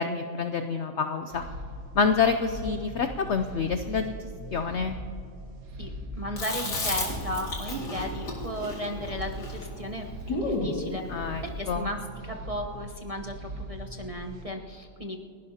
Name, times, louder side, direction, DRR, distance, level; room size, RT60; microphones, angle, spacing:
voice 1, 0.0-1.4 2.0-5.0 11.1-11.9, left 5 dB, 70° left, 8 dB, 0.6 m, -27 dB
sound 1, 1.3-14.4, right 1 dB, 60° right, 1.6 m, -40 dB
voice 2, 5.8-15.2, equal, 30° right, 0 dB, 0.7 m, -35 dB
Chewing mastication, 6.4-10.8, left 2 dB, 90° left, 2.9 m, -33 dB
30.0 x 11.5 x 2.8 m, 2.6 s
omnidirectional pair, 1.8 m